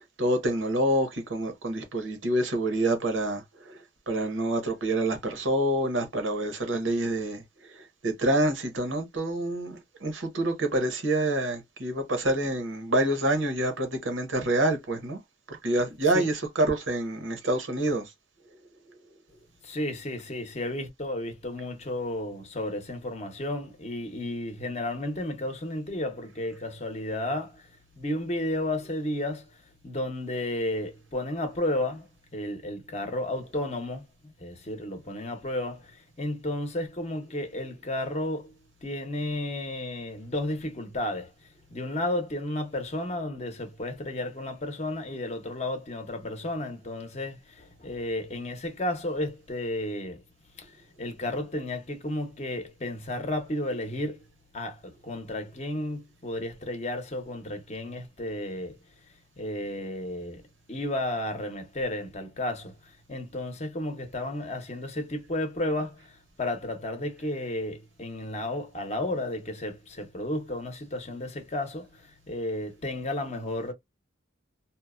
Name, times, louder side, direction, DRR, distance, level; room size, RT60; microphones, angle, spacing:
voice 1, 0.0-3.8 4.1-15.2 15.5-18.1, right 1 dB, 80° right, 0.9 m, -27 dB
voice 2, 19.6-27.7 28.0-29.6 29.8-38.5 38.8-50.2 50.6-54.2 54.5-58.8 59.4-60.4 60.7-73.7, left 1 dB, 35° left, 0.7 m, -33 dB
2.7 x 2.1 x 2.3 m
head